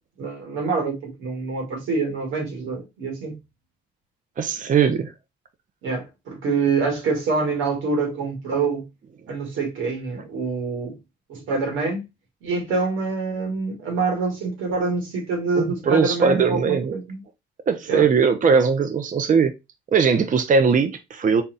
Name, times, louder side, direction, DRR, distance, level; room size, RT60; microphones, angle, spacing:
voice 1, 0.2-3.4 5.8-8.9 9.3-11.0 11.3-12.0 12.4-17.2 17.9-18.1, right 4 dB, 90° right, 1.6 m, -26 dB
voice 2, 4.4-5.1 15.6-17.0 17.7-19.5 19.9-21.4, right 5 dB, 40° right, 0.6 m, -20 dB
4.1 x 2.3 x 3.7 m
cardioid pair, 90°, 20 cm